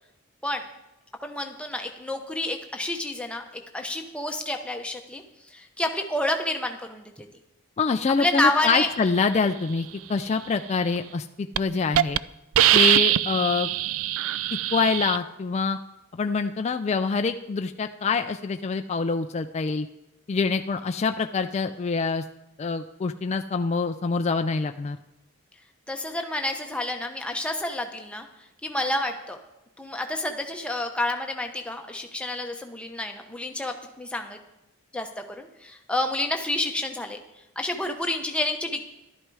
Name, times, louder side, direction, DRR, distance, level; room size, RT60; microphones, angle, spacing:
voice 1, 1.2-3.4 3.7-5.2 5.5-7.3 8.2-8.9 25.9-28.3 28.6-29.4 29.8-34.4 34.9-37.2 37.6-38.8, left 1 dB, 5° left, 4 dB, 0.9 m, -29 dB
voice 2, 7.8-12.2 12.7-13.7 14.7-15.8 16.1-19.9 20.3-22.2 22.6-25.0, left 4 dB, 30° left, 7 dB, 0.3 m, -25 dB
Hiss, 11.0-11.2 11.6-11.7 12.0-12.2 12.6-15.2, right 13 dB, 65° right, 0.3 m, -22 dB
12.0 x 11.0 x 4.8 m, 0.92 s
head